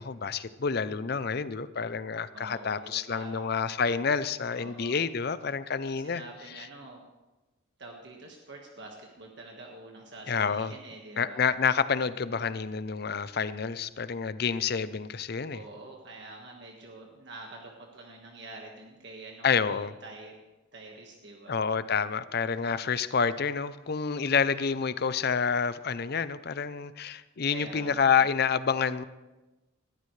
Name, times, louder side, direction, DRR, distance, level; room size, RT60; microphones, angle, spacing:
voice 1, 0.0-6.2 6.6-6.7 10.3-10.7 11.2-15.6 19.4-19.9 21.5-29.0, left 6 dB, 50° left, 14 dB, 0.6 m, -28 dB
voice 2, 2.3-3.6 4.6-5.0 6.0-7.0 7.8-11.4 15.5-20.4 20.7-21.6 27.5-28.3, right 2 dB, 60° right, 0 dB, 1.6 m, -46 dB
20.0 x 14.0 x 3.3 m, 1.1 s
head